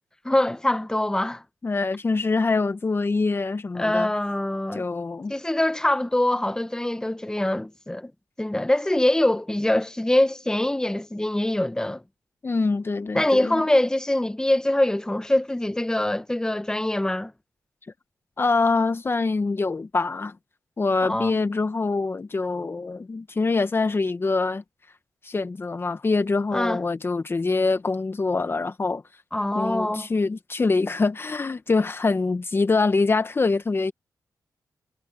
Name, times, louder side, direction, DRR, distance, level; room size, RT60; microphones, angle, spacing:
voice 1, 0.2-1.4 3.7-4.8 5.3-8.1 8.4-12.0 13.1-17.3 21.0-21.4 26.5-26.8 29.3-30.1, left 1 dB, 10° left, 1.2 m, -24 dB
voice 2, 1.6-4.1 4.7-5.3 12.4-13.6 18.4-20.3 20.8-24.6 25.2-29.0 29.5-33.9, left 3 dB, 35° left, 1.0 m, -24 dB
cardioid pair, 75°, 7 cm